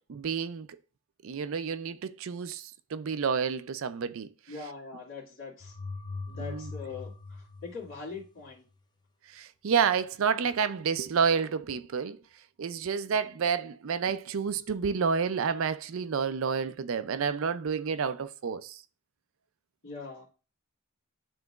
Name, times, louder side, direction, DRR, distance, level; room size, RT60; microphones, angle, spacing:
voice 1, 0.1-0.7 1.2-4.3 6.4-6.7 9.3-12.2 12.6-18.8, right 6 dB, 65° right, 0.4 m, -29 dB
voice 2, 4.5-5.8 6.3-8.6 19.8-20.3, left 4 dB, 60° left, 2.2 m, -42 dB
sound 1, 5.6-8.5, left 3 dB, 20° left, 0.6 m, -41 dB
10.5 x 3.8 x 2.4 m
head